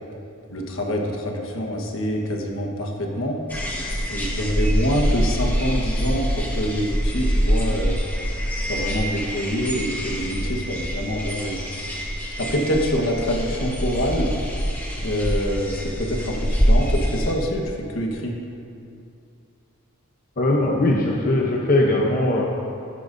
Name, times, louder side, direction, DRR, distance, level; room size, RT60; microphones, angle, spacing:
voice 1, 0.5-3.4 4.1-8.0 8.6-11.6 12.4-14.3 15.0-18.4, equal, 70° left, 1 dB, 1.3 m, -26 dB
sound 1, 3.5-17.3, equal, 10° left, 1.4 m, -25 dB
voice 2, 20.4-22.5, left 1 dB, 40° left, -2 dB, 0.8 m, -20 dB
15.0 x 10.0 x 2.7 m, 2.6 s
head